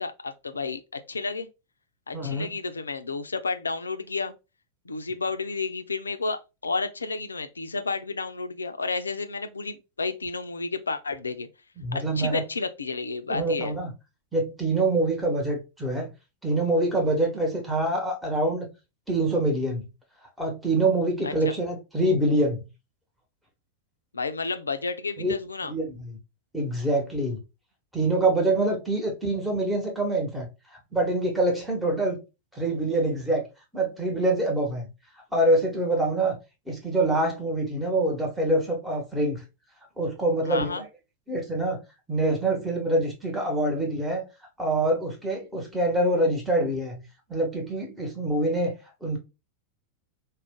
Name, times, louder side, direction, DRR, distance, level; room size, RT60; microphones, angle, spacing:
voice 1, 0.0-1.5 2.1-4.3 4.9-11.5 11.9-13.7 21.2-21.5 24.1-25.7 40.4-40.9, left 4 dB, 85° left, 0.4 m, -31 dB
voice 2, 2.1-2.5 11.8-12.4 13.3-13.9 14.3-16.1 16.4-18.7 19.1-19.9 20.4-22.6 25.2-25.3 25.6-26.2 26.5-27.4 27.9-30.5 30.9-32.2 32.5-33.4 33.7-34.9 35.3-36.3 36.7-39.4 40.0-40.9 41.3-41.8 42.1-44.3 44.6-48.7 49.0-49.2, right 1 dB, 5° right, 1.0 m, -25 dB
2.4 x 2.1 x 3.5 m
figure-of-eight pair, 95°, 0 cm